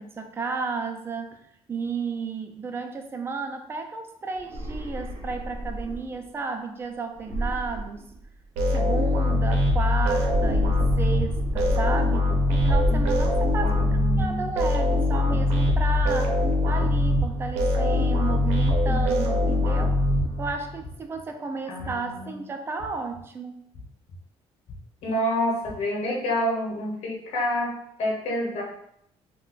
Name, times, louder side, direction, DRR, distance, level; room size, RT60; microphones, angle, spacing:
voice 1, 0.0-1.4 1.7-8.2 8.7-13.8 14.2-16.4 16.6-20.0 20.4-23.6, right 4 dB, 20° right, 5 dB, 0.3 m, -33 dB
sound 1, 4.4-6.3 7.2-8.6 10.0-12.2 12.5-14.2, right 1 dB, 45° right, 0.8 m, -32 dB
sound 2, 8.6-20.8, left 1 dB, 75° right, 0.6 m, -23 dB
voice 2, 13.6-14.5 21.7-22.4 25.0-28.6, equal, 70° left, -2 dB, 1.0 m, -28 dB
sound 3, 20.8-21.2 21.8-22.2 22.8-23.2 23.7-24.2 24.7-25.1 25.6-25.7, left 2 dB, 40° left, 0.5 m, -42 dB
2.3 x 2.2 x 3.9 m, 0.74 s
cardioid pair, 145°, 11 cm